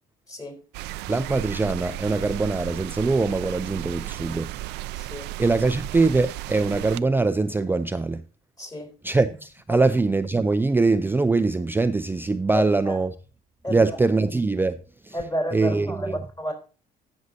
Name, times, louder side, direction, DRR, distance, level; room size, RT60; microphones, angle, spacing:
voice 1, 0.3-0.6 5.0-5.3 8.6-8.9 9.7-9.8 12.5-13.0 13.6-14.0 15.1-16.5, equal, 20° left, 3.7 m, -31 dB
sound 1, 0.7-7.0, right 16 dB, 85° right, 0.4 m, -34 dB
voice 2, 1.1-4.5 5.4-8.2 9.0-13.1 13.7-14.8 15.0-15.2 15.5-16.2, right 3 dB, 10° right, 0.4 m, -23 dB
16.0 x 6.3 x 2.7 m
cardioid pair, 110°, 17 cm